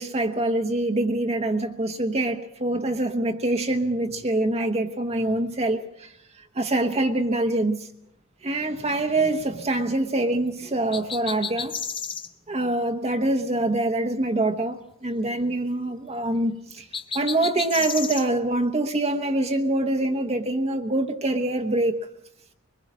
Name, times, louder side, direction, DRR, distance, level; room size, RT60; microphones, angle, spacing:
voice 1, 0.0-6.1 6.5-7.9 8.4-11.7 12.5-16.9 17.1-22.0, right 2 dB, 30° right, 1.1 m, -25 dB
sound 1, 10.9-12.3 16.9-18.3, left 6 dB, 25° left, 0.9 m, -32 dB
23.0 x 21.0 x 6.2 m
head